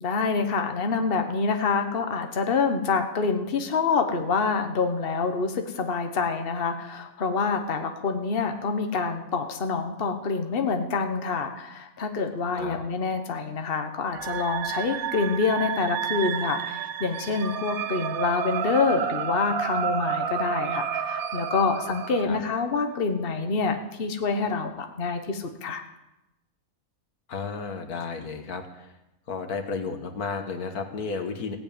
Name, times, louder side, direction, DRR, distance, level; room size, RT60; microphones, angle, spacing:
voice 1, 0.0-25.8, left 4 dB, 40° left, 6 dB, 1.3 m, -27 dB
sound 1, 14.1-22.2, right 8 dB, 75° right, 1.2 m, -30 dB
voice 2, 27.3-28.9 29.3-31.6, left 5 dB, 90° left, 6 dB, 1.9 m, -33 dB
16.0 x 8.0 x 8.9 m, 0.94 s
omnidirectional pair, 1.5 m